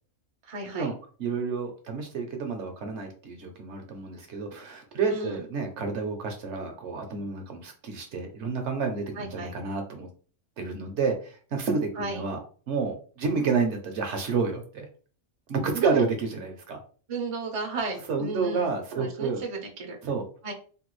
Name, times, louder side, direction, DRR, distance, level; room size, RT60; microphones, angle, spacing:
voice 1, 0.4-0.9 5.1-5.4 9.2-9.5 12.0-12.2 15.5-16.0 17.1-20.0 20.4-20.5, right 3 dB, 45° right, 2 dB, 0.4 m, -34 dB
voice 2, 1.2-10.1 10.6-12.4 12.7-14.9 15.5-16.8 18.1-19.4 20.0-20.2, right 4 dB, 60° right, 4 dB, 0.8 m, -29 dB
3.3 x 2.3 x 3.0 m, 0.41 s
omnidirectional pair, 1.5 m